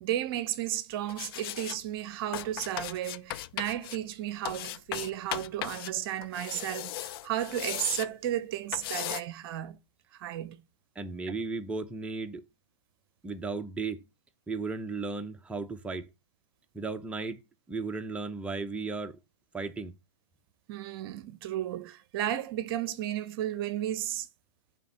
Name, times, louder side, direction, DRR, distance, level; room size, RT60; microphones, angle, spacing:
voice 1, 0.0-9.8 10.1-10.6 20.7-24.3, right 12 dB, 45° right, 0.8 m, -33 dB
sound 1, 1.1-1.8 2.3-4.0 4.5-5.9 6.2-8.1 8.7-9.2, left 15 dB, 45° left, 0.5 m, -37 dB
voice 2, 10.9-12.4 13.2-14.0 14.5-16.1 16.7-17.4 17.7-19.2 19.5-19.9, right 3 dB, 5° right, 0.8 m, -35 dB
9.1 x 3.7 x 6.8 m
hypercardioid pair, 115°, 17 cm